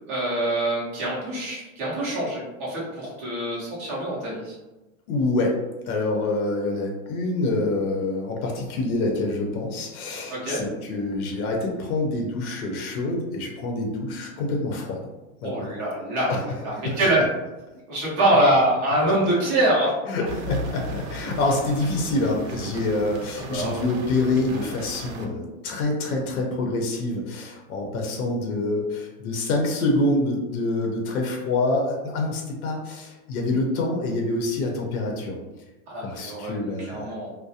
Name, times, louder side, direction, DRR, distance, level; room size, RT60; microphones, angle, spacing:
voice 1, 0.1-4.5 10.3-10.6 15.4-17.2 17.9-19.9 23.5-23.8 35.9-37.3, right 1 dB, 20° right, -6 dB, 0.5 m, -24 dB
voice 2, 5.1-5.6 5.9-15.0 15.4-15.7 16.3-16.4 16.7-17.0 20.1-35.4 36.0-37.1, left 2 dB, 85° left, 0 dB, 0.7 m, -26 dB
sound 1, 20.2-25.3, right 1 dB, 65° right, 0.6 m, -36 dB
2.3 x 2.0 x 2.6 m, 1.1 s
supercardioid pair, 170°, 42 cm